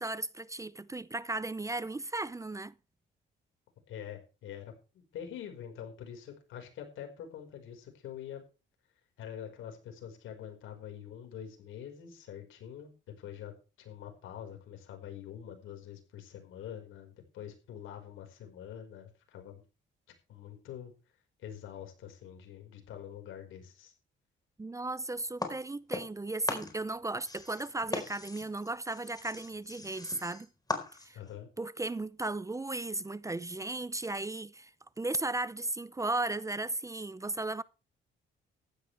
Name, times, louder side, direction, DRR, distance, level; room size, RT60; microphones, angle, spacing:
voice 1, 0.0-2.7 24.6-30.5 31.0-31.2 31.6-34.7 35.0-37.6, right 2 dB, 15° right, 0.6 m, -35 dB
voice 2, 3.9-8.4 9.2-19.6 20.3-20.9 21.4-23.9 31.1-31.5, left 9 dB, 85° left, 5.1 m, -45 dB
sound 1, 25.4-26.2 26.5-31.3, left 2 dB, 20° left, 4.5 m, -39 dB
15.5 x 13.0 x 3.4 m
cardioid pair, 90°, 20 cm